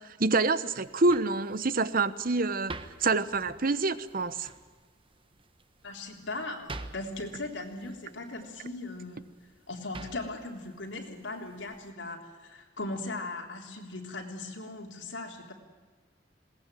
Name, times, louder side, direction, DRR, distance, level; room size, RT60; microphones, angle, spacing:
voice 1, 0.0-2.7 3.0-4.5, right 3 dB, 50° right, 14 dB, 1.0 m, -27 dB
sound 1, 0.7-11.9, right 2 dB, 30° right, 1.3 m, -49 dB
voice 2, 5.8-9.2 9.7-15.5, left 2 dB, 90° left, 1 dB, 3.7 m, -38 dB
21.0 x 18.5 x 9.1 m, 1.4 s
head